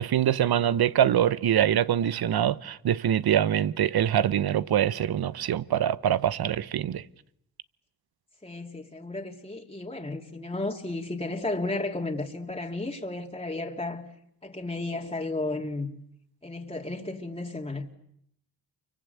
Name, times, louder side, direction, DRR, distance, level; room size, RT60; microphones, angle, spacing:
voice 1, 0.0-7.0, right 10 dB, 65° right, 1.1 m, -24 dB
voice 2, 8.4-14.1 14.4-15.9 16.4-17.9, left 2 dB, 15° left, 2.9 m, -33 dB
29.0 x 24.5 x 8.2 m
supercardioid pair, 50°, 41 cm